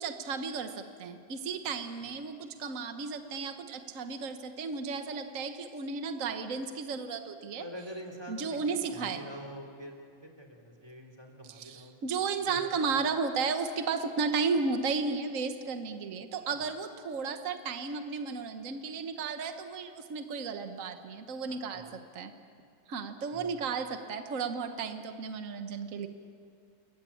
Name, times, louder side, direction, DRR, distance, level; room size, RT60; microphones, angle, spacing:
voice 1, 0.0-7.6 8.3-9.2 11.5-22.3 22.9-26.1, right 5 dB, 65° right, 7 dB, 0.8 m, -34 dB
voice 2, 7.6-11.9 12.4-12.6 16.4-16.6 21.4-21.9 23.3-23.6, equal, 10° right, 2 dB, 3.2 m, -46 dB
29.5 x 22.5 x 8.7 m, 2.3 s
omnidirectional pair, 3.4 m